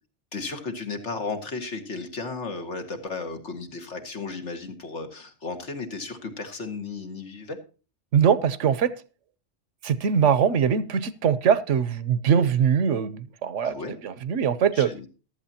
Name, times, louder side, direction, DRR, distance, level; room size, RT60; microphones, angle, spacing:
voice 1, 0.3-7.6 13.6-14.0 14.7-15.1, left 3 dB, 70° left, 2.0 m, -34 dB
voice 2, 8.1-8.9 9.8-13.7 14.0-14.9, right 7 dB, 80° right, 1.1 m, -22 dB
15.0 x 12.0 x 2.8 m
omnidirectional pair, 1.2 m